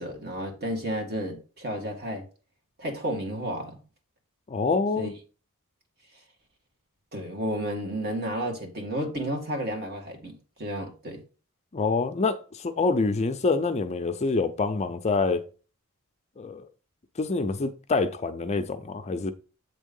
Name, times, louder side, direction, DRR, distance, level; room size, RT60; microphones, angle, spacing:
voice 1, 0.0-2.2 2.8-3.8 5.0-5.1 7.1-11.2, equal, 45° right, 2.0 m, -32 dB
voice 2, 4.5-5.1 11.7-15.4 16.4-16.7 17.2-19.3, left 3 dB, 30° left, 0.5 m, -26 dB
8.1 x 3.6 x 5.3 m
head